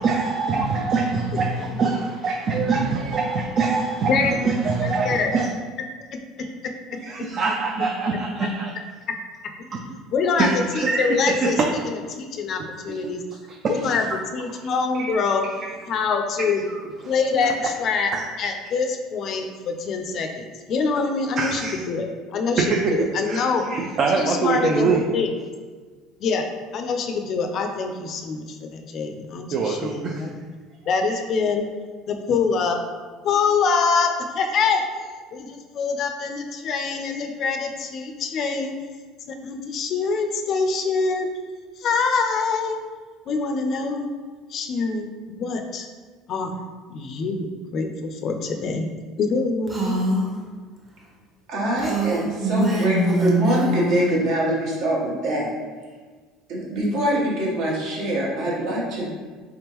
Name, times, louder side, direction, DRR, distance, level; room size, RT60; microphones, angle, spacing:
voice 1, 0.0-5.5 6.9-8.7 9.7-9.9 10.4-11.7 12.9-13.1 13.5-14.2 14.6-15.1 16.7-16.8 17.4-17.7 18.1-18.2 21.4-21.8 22.6-25.0 29.5-30.3, right 4 dB, 40° right, 1 dB, 0.4 m, -24 dB
voice 2, 4.1-5.3 10.1-10.5 10.7-11.6 11.9-13.2 13.7-14.0 14.3-15.4 15.9-16.6 17.0-18.1 18.4-21.6 21.9-22.6 22.9-23.6 24.2-25.3 26.2-26.5 26.7-30.3 30.9-31.7 32.1-32.8 33.2-38.7 39.3-41.3 41.8-42.8 43.3-44.1 44.5-45.9 46.3-46.6 46.9-48.9 49.2-50.1, left 5 dB, 45° left, 4 dB, 0.4 m, -25 dB
Female speech woman speaking, 49.7-50.3 51.8-54.1, right 1 dB, 20° right, 0.8 m, -23 dB
voice 3, 51.5-55.5 56.5-59.1, right 1 dB, 65° right, -3 dB, 1.1 m, -24 dB
3.6 x 3.5 x 3.0 m, 1.5 s
cardioid pair, 130°, 0 cm